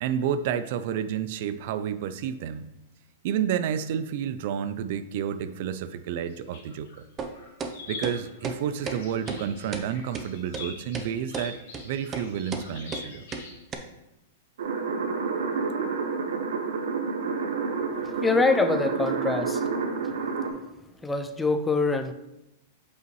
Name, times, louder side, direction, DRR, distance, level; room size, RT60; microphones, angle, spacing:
voice 1, 0.0-2.7 3.2-6.9 7.9-11.6 11.8-13.2, right 9 dB, 60° right, 12 dB, 0.4 m, -30 dB
sound 1, 6.1-7.0 7.3-13.6, left 4 dB, 65° left, 2.1 m, -44 dB
sound 2, 7.2-7.3 7.6-7.7 8.0-8.2 8.4-8.6 8.9-9.0 9.3-9.4 9.7-9.9 10.1-10.3 10.5-10.6 10.9-11.1 11.3-11.5 11.7-11.8 12.1-12.3 12.5-12.6 12.9-13.0 13.3-13.4 13.7-13.8, right 5 dB, 25° right, 0.7 m, -33 dB
sound 3, 14.6-20.5, right 5 dB, 80° right, 1.0 m, -29 dB
voice 2, 18.0-19.7 20.0-20.2 21.0-22.1, left 3 dB, 10° left, 8 dB, 0.5 m, -25 dB
7.9 x 5.4 x 3.1 m, 0.92 s
hypercardioid pair, 135°, 0 cm